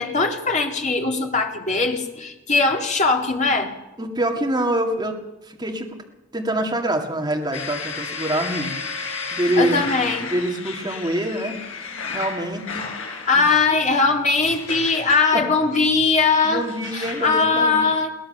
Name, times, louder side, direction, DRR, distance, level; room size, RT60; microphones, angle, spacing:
voice 1, 0.0-3.7 9.6-10.3 13.3-16.6 16.9-18.1, left 4 dB, 35° left, 3 dB, 2.2 m, -20 dB
voice 2, 4.0-5.2 5.4-6.0 6.3-8.8 9.3-9.8 10.3-11.6 12.1-12.9 13.3-13.4 15.3-15.4 16.4-17.9, right 1 dB, 20° right, 1 dB, 2.2 m, -25 dB
sound 1, 7.5-17.3, left 5 dB, 75° left, 4.2 m, -33 dB
22.0 x 17.5 x 6.8 m, 1.0 s
head